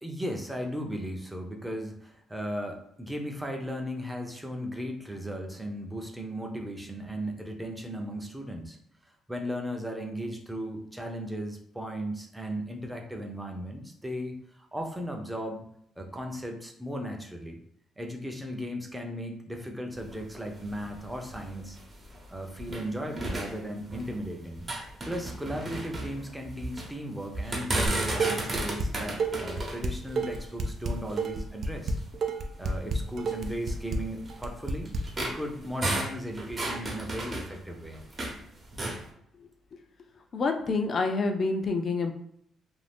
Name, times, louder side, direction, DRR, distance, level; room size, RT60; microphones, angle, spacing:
voice 1, 0.0-8.8 9.3-15.7 16.0-17.6 18.0-21.8 22.3-24.7 25.1-32.0 32.6-38.0, equal, 10° right, 2 dB, 0.6 m, -36 dB
sound 1, 19.9-22.9 23.2-24.2 24.5-26.9 27.3-31.4 32.0-32.1 32.6-32.7 33.5-38.4 38.7-39.0, right 2 dB, 35° right, 0.9 m, -34 dB
Dishes pots and pans, 27.9-28.9 29.2-35.0, right 3 dB, 55° right, 0.4 m, -30 dB
voice 2, 40.3-42.1, left 3 dB, 50° left, 5 dB, 0.5 m, -27 dB
2.6 x 2.3 x 3.4 m, 0.71 s
cardioid pair, 90°, 0 cm